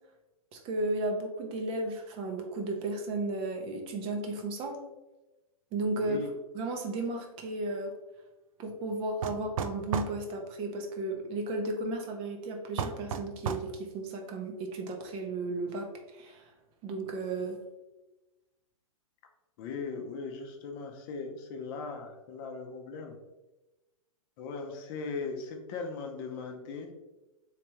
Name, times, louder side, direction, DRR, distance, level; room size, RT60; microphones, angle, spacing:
voice 1, 0.5-4.8 5.7-6.2 6.5-7.9 8.6-16.5 16.8-17.6, right 2 dB, 30° right, 3 dB, 0.6 m, -34 dB
voice 2, 5.9-6.3 9.2-9.3 19.6-23.2 24.4-26.9, left 4 dB, 40° left, 3 dB, 0.6 m, -39 dB
sound 1, 9.2-10.2 12.8-13.7, right 6 dB, 70° right, 0.4 m, -33 dB
3.3 x 3.2 x 2.9 m, 1.0 s
hypercardioid pair, 125°, 18 cm